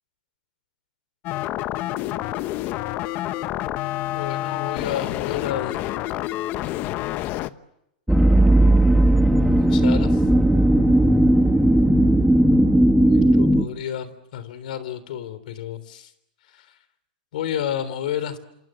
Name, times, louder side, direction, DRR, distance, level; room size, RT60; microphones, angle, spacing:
sound 1, 1.2-7.5, left 15 dB, 40° left, 1.0 m, -28 dB
voice 1, 4.1-5.8 7.1-7.6 9.4-10.2 13.1-16.1 16.5-16.7 17.3-18.4, left 10 dB, 70° left, 15 dB, 3.5 m, -31 dB
sound 2, 8.1-13.6, right 1 dB, ahead, 1.4 m, -16 dB
28.0 x 27.5 x 7.6 m, 0.83 s
hypercardioid pair, 135°, 5 cm